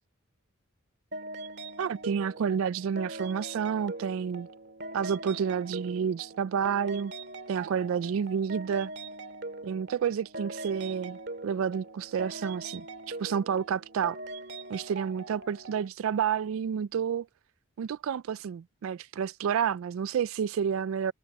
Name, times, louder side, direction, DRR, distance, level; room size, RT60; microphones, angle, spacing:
sound 1, 1.1-15.9, right 2 dB, 55° right, 2.0 m, -41 dB
voice 1, 1.8-4.5 4.9-7.1 7.5-8.9 9.6-14.2 14.7-17.3 17.8-21.1, right 7 dB, 80° right, 0.3 m, -30 dB
head